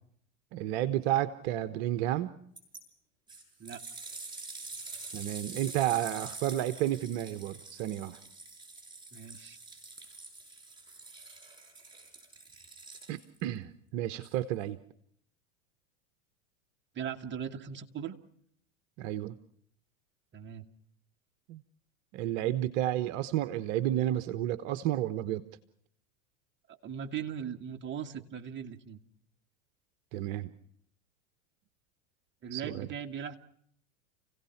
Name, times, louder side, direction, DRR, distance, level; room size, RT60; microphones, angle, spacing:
voice 1, 0.5-2.3 5.1-8.2 13.1-14.8 19.0-19.4 21.5-21.6 22.1-25.4 30.1-30.5 32.5-32.9, right 13 dB, 55° right, 11 dB, 1.2 m, -31 dB
sound 1, 2.6-2.8 3.3-13.4 14.2-14.3, right 3 dB, 10° right, 7.2 m, -46 dB
voice 2, 9.1-9.6 16.9-18.2 20.3-20.6 26.7-29.0 32.4-33.4, right 8 dB, 30° right, 5 dB, 1.9 m, -39 dB
29.5 x 17.0 x 5.9 m, 0.67 s
hypercardioid pair, 100°, 38 cm